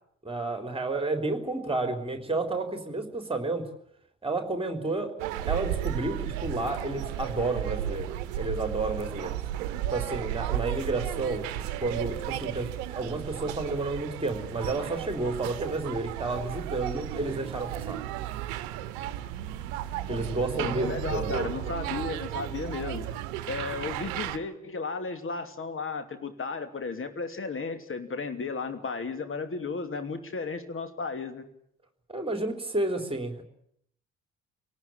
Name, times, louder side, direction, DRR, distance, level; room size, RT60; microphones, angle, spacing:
voice 1, 0.2-3.6 4.2-5.1 5.5-9.3 9.9-18.0 20.1-21.5 32.1-33.4, right 2 dB, 15° right, 6 dB, 4.1 m, -31 dB
sound 1, 5.2-24.4, right 12 dB, 65° right, 1.1 m, -34 dB
voice 2, 20.5-23.1 23.5-31.5, left 4 dB, 35° left, 9 dB, 2.8 m, -34 dB
28.0 x 18.5 x 8.9 m, 0.71 s
figure-of-eight pair, 45°, 38 cm